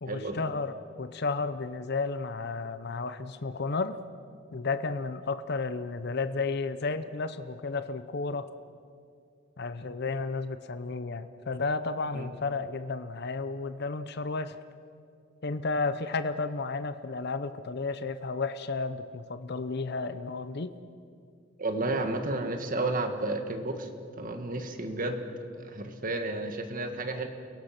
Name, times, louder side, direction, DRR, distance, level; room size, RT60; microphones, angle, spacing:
voice 1, 0.0-4.0 4.5-8.5 9.6-14.6 15.4-20.7, left 3 dB, 55° left, 11 dB, 0.8 m, -32 dB
voice 2, 21.6-25.2 25.5-27.3, right 2 dB, 45° right, 6 dB, 1.7 m, -32 dB
29.0 x 17.0 x 5.9 m, 2.4 s
head